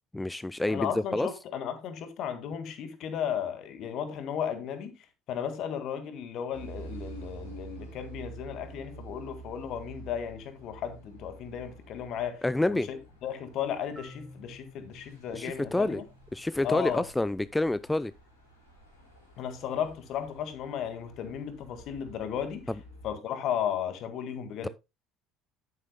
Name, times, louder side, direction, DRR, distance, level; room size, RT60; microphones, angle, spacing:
voice 1, 0.1-1.3 12.4-12.9 15.3-16.0 16.3-18.1 24.6-24.7, left 2 dB, 10° left, 0.4 m, -28 dB
voice 2, 0.7-16.0 16.6-17.0 19.4-22.6 23.0-24.7, left 8 dB, 50° left, 1.8 m, -35 dB
sound 1, 6.5-23.1, right 3 dB, 80° left, 4.8 m, -49 dB
Marimba xylophone, 14.0-17.8, left 1 dB, 20° right, 2.2 m, -54 dB
11.0 x 9.6 x 2.2 m
figure-of-eight pair, 60°, 0 cm